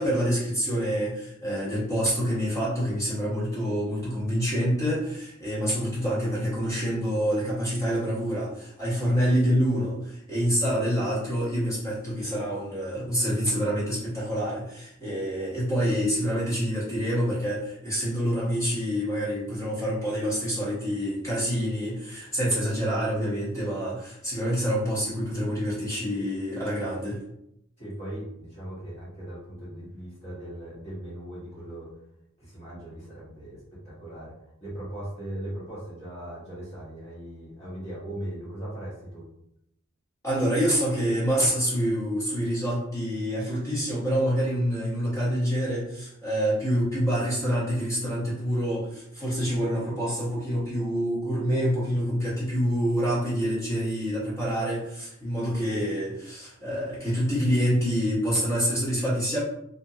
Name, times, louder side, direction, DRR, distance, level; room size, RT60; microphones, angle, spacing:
voice 1, 0.0-27.2 40.2-59.4, equal, 15° left, -8 dB, 1.0 m, -27 dB
voice 2, 27.8-31.9 32.4-34.3 34.6-39.3, right 1 dB, 30° left, -9 dB, 1.3 m, -39 dB
2.6 x 2.5 x 2.7 m, 0.78 s
head